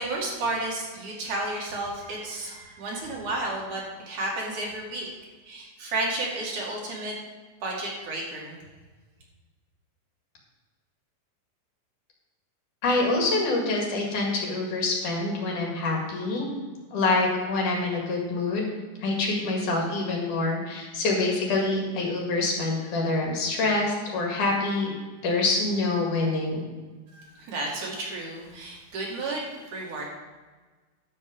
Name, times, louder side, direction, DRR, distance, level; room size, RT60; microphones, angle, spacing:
voice 1, 0.0-5.1 5.4-7.1 7.6-8.6 27.1-30.0, right 2 dB, 65° right, -3 dB, 3.5 m, -32 dB
voice 2, 12.8-16.5 16.9-18.7 19.0-24.9 25.2-26.7, left 2 dB, 65° left, -1 dB, 3.4 m, -26 dB
11.0 x 7.6 x 5.3 m, 1.3 s
omnidirectional pair, 3.9 m